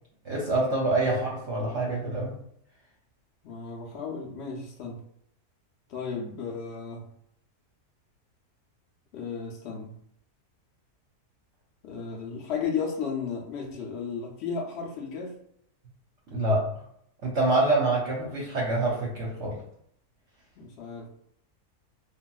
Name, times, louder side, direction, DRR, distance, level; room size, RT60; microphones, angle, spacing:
voice 1, 0.2-2.4 16.3-16.7 17.2-19.6, right 2 dB, 60° right, -3 dB, 0.8 m, -26 dB
voice 2, 3.4-5.0 5.9-7.1 9.1-10.0 11.8-15.4 20.6-21.1, left 5 dB, 85° left, -1 dB, 0.5 m, -34 dB
3.4 x 2.3 x 2.3 m, 0.70 s
omnidirectional pair, 1.7 m